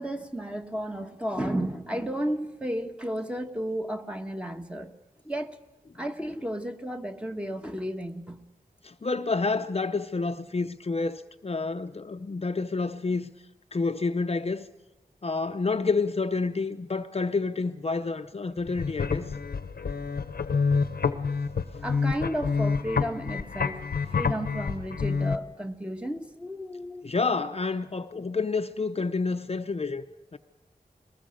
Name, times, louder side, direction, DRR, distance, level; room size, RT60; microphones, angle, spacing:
voice 1, 0.0-4.9 5.2-5.6 5.9-8.4 21.8-27.1, equal, 5° right, 1.3 m, -33 dB
voice 2, 8.8-13.3 13.7-14.7 15.2-19.3 27.0-30.0 30.3-30.4, left 4 dB, 40° left, 0.7 m, -29 dB
sound 1, 18.6-25.4, left 5 dB, 85° left, 0.9 m, -28 dB
22.5 x 20.0 x 6.5 m
wide cardioid pair, 90°, 15 cm